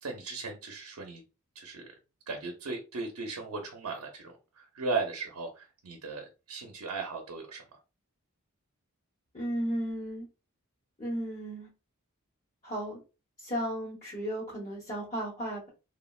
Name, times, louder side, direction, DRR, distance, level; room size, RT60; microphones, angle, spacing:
voice 1, 0.0-1.2 1.5-1.9 2.3-7.8, right 4 dB, 90° right, 2 dB, 0.6 m, -37 dB
voice 2, 9.3-10.3 11.0-11.7 12.6-13.0 13.4-15.7, equal, 35° left, -7 dB, 1.0 m, -34 dB
3.4 x 2.1 x 2.3 m, 0.30 s
head